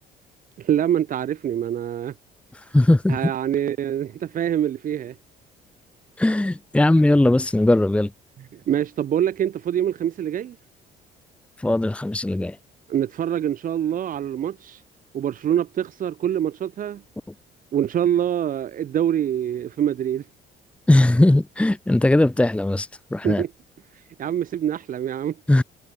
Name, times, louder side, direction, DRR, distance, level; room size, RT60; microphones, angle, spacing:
voice 1, 0.6-2.1 3.1-5.2 8.5-10.6 12.9-14.8 15.1-17.0 17.7-20.2 23.2-23.5 24.2-25.4, right 10 dB, 55° right, 2.7 m, -25 dB
voice 2, 2.7-3.3 6.2-8.1 11.6-12.6 20.9-23.4 25.5-25.6, left 1 dB, 5° left, 1.2 m, -19 dB
cardioid pair, 110°, 17 cm